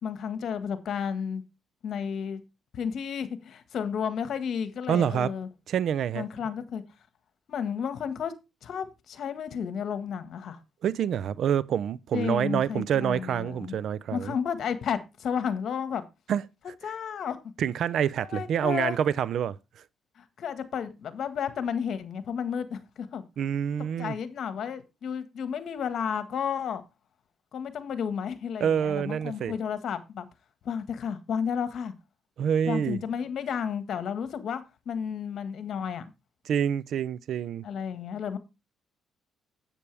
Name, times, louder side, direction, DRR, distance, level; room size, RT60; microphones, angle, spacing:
voice 1, 0.0-1.4 1.8-2.4 2.7-5.5 6.1-6.8 7.5-8.3 8.6-10.6 12.1-13.8 14.1-16.0 16.8-17.4 18.3-19.0 20.2-23.2 24.0-26.8 27.5-30.2 30.6-31.9 32.6-36.0 37.6-38.4, left 7 dB, 65° left, 1.6 m, -32 dB
voice 2, 4.9-5.3 5.7-6.2 10.8-14.3 16.3-16.4 17.6-19.8 23.4-24.2 28.6-29.5 32.4-33.0 36.5-37.6, right 8 dB, 70° right, 0.5 m, -27 dB
10.0 x 8.5 x 3.4 m
cardioid pair, 90°, 0 cm